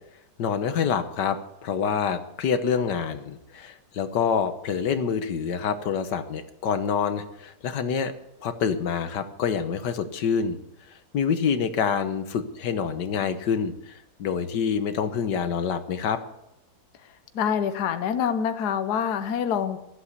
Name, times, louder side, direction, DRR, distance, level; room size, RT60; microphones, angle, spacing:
voice 1, 0.4-8.1 8.4-10.6 11.1-16.2, left 6 dB, 90° left, 9 dB, 1.7 m, -26 dB
voice 2, 17.3-19.8, left 8 dB, 70° left, 9 dB, 1.4 m, -26 dB
14.0 x 8.3 x 8.2 m, 0.84 s
omnidirectional pair, 1.8 m